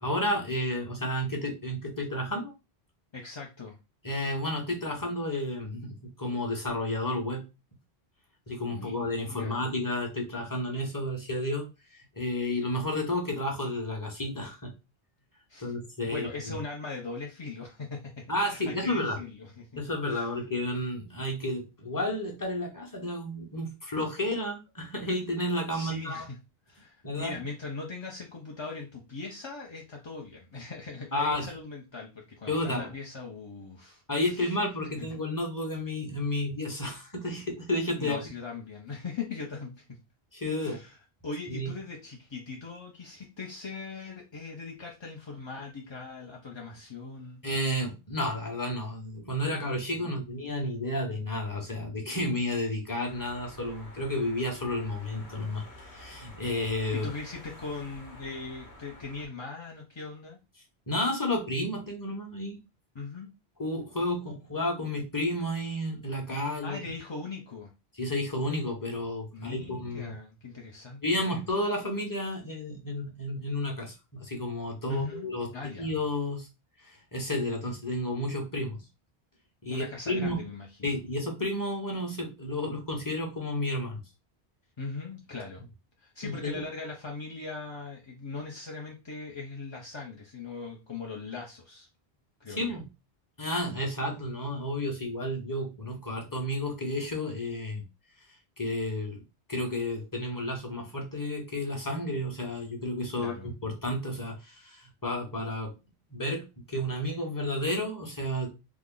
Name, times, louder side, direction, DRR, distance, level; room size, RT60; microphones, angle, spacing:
voice 1, 0.0-2.5 4.0-7.5 8.5-11.6 12.1-14.7 15.6-16.6 18.3-19.2 19.8-26.3 27.0-27.3 31.1-31.5 32.5-32.9 34.1-38.3 40.3-40.8 41.5-41.7 47.4-57.1 60.9-62.6 63.6-66.8 68.0-70.1 71.0-75.5 75.8-76.5 76.8-78.8 79.6-80.4 80.8-84.0 86.2-86.6 92.5-92.9 93.4-97.8 98.6-99.2 99.5-105.7 106.1-108.5, left 1 dB, 20° left, 0.9 m, -31 dB
voice 2, 3.1-3.8 8.7-9.7 15.5-15.7 16.1-19.8 20.1-20.3 25.7-26.4 26.7-34.0 34.3-34.6 35.0-35.1 38.0-40.0 40.6-41.0 41.2-47.4 50.0-50.2 56.9-60.4 62.9-63.3 66.5-67.7 69.3-71.3 74.9-75.9 79.7-81.0 84.8-85.6 86.0-91.9 92.4-92.8 103.1-103.5, left 4 dB, 40° left, 0.4 m, -40 dB
sound 1, 53.0-59.3, left 1 dB, 80° left, 1.2 m, -49 dB
3.5 x 2.0 x 3.7 m
omnidirectional pair, 1.1 m